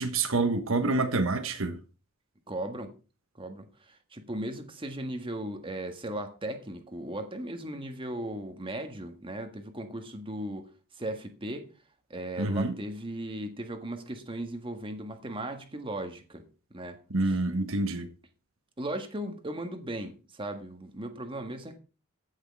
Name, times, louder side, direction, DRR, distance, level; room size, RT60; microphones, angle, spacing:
voice 1, 0.0-1.8 12.4-12.7 17.1-18.1, right 2 dB, 75° right, 1.2 m, -27 dB
voice 2, 2.5-2.9 3.4-10.7 10.9-11.7 12.1-16.4 16.7-17.0 17.2-17.4 18.8-21.8, right 1 dB, 25° right, 1.6 m, -37 dB
15.0 x 6.6 x 4.7 m
head